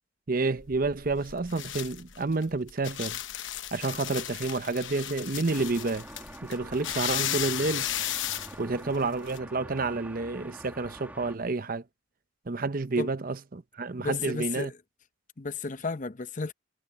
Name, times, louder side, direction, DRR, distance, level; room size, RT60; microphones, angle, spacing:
voice 1, 0.3-3.2 3.7-6.1 6.4-7.9 8.6-11.8 12.5-14.7, right 3 dB, 45° right, 0.8 m, -29 dB
sound 1, 0.6-9.4, left 12 dB, 75° left, 1.0 m, -35 dB
sound 2, 5.5-11.4, right 1 dB, 10° right, 1.6 m, -46 dB
voice 2, 14.0-14.7 15.4-16.5, left 4 dB, 40° left, 0.7 m, -33 dB
head